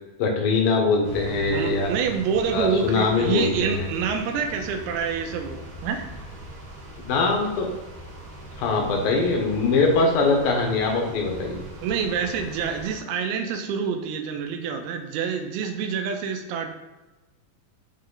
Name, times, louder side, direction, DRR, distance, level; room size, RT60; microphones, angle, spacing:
voice 1, 0.2-1.9 2.5-3.9 7.1-7.7 8.6-11.6, left 3 dB, 70° left, 2 dB, 2.6 m, -22 dB
sound 1, 1.0-13.0, right 1 dB, 50° right, 1.2 m, -40 dB
voice 2, 1.5-6.1 11.8-16.7, right 6 dB, 90° right, 4 dB, 2.6 m, -27 dB
9.4 x 3.3 x 3.8 m, 1.1 s
omnidirectional pair, 4.4 m